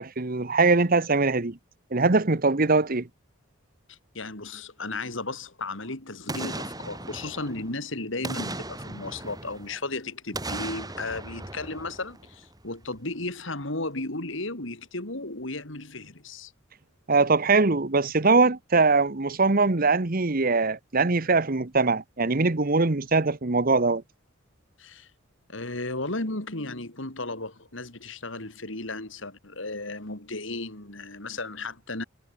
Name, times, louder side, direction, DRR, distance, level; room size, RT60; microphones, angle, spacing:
voice 1, 0.0-1.6 1.9-3.1 17.1-24.0, right 3 dB, 45° right, 1.1 m, -22 dB
voice 2, 3.9-16.5 24.8-25.1 25.5-32.0, left 2 dB, 65° left, 3.5 m, -35 dB
Boom, 6.3-7.8 8.2-9.9 10.3-12.6 12.9-13.0, right 2 dB, 20° right, 7.9 m, -37 dB
head